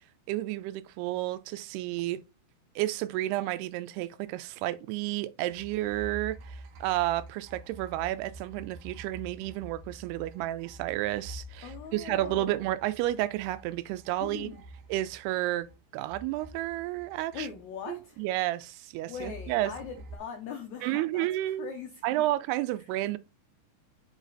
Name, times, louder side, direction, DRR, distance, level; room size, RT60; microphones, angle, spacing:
voice 1, 0.3-2.2 2.8-14.5 14.9-15.7 15.9-17.5 17.9-19.7 20.8-21.7 22.0-23.2, right 15 dB, 85° right, 2.6 m, -31 dB
sound 1, 5.5-15.8 16.1-17.9 19.1-20.2, right 2 dB, 70° right, 2.3 m, -47 dB
voice 2, 11.6-12.6 14.2-14.6 17.3-18.2 19.1-22.2, left 7 dB, 85° left, 1.6 m, -41 dB
7.1 x 4.1 x 4.0 m
omnidirectional pair, 4.6 m